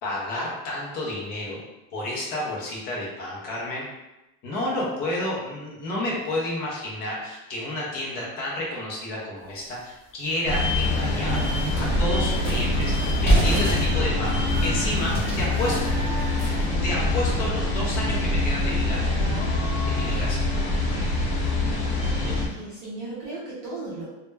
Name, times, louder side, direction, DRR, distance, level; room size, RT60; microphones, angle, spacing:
voice 1, 0.0-1.6 1.9-3.8 4.4-11.4 11.8-15.9 16.8-19.0 20.0-20.4, left 1 dB, 25° left, -4 dB, 0.4 m, -30 dB
sound 1, 9.6-9.7 10.2-10.3 10.7-16.7, right 1 dB, 5° left, 0.8 m, -28 dB
sound 2, 10.4-22.5, left 1 dB, 50° left, 0.7 m, -24 dB
voice 2, 22.2-24.1, right 2 dB, 40° right, -7 dB, 0.5 m, -36 dB
2.1 x 2.1 x 3.2 m, 1.0 s
supercardioid pair, 175°, 39 cm